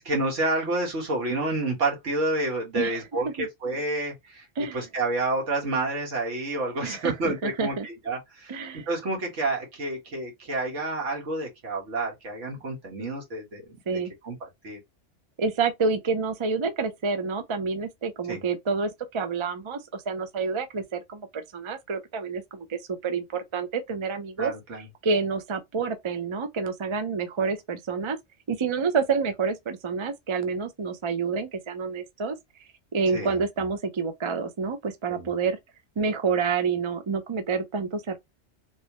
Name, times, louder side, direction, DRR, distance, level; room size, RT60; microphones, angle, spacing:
voice 1, 0.0-4.5 4.7-13.6 14.2-14.8 18.3-18.4 24.4-24.9 33.1-33.4 35.1-35.3, right 2 dB, 75° right, 1.8 m, -29 dB
voice 2, 2.8-3.5 4.6-4.9 6.8-7.9 8.5-8.9 13.9-14.1 15.4-24.5 25.0-28.2 28.5-32.4 32.9-35.6 36.0-38.2, right 5 dB, 40° right, 0.4 m, -28 dB
3.1 x 2.9 x 2.9 m
omnidirectional pair, 1.2 m